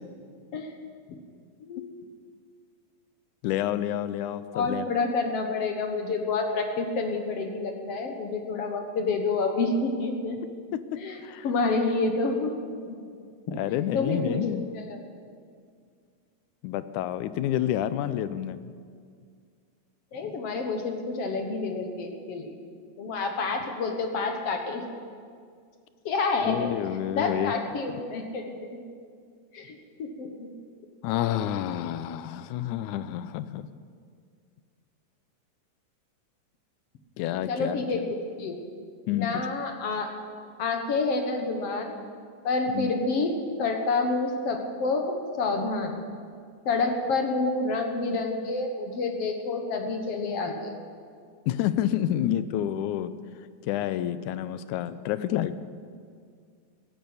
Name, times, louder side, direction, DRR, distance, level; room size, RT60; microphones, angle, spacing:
voice 1, 3.4-4.9 10.7-10.8 11.2-11.5 13.5-14.7 16.6-18.6 26.4-27.5 31.0-33.7 37.2-38.1 39.1-39.5 42.7-42.9 51.5-53.1 53.7-55.6, left 12 dB, 90° left, 13 dB, 2.1 m, -29 dB
voice 2, 4.5-10.4 10.9-12.5 12.8-13.0 13.5-13.6 13.9-15.0 20.1-22.5 23.0-24.9 26.1-26.7 27.1-28.8 29.5-30.5 37.5-38.6 39.1-40.1 40.6-42.0 42.4-43.3 43.6-46.0 46.7-50.7, left 3 dB, 60° left, 4 dB, 2.1 m, -28 dB
16.0 x 11.0 x 7.9 m, 2.1 s
omnidirectional pair, 3.4 m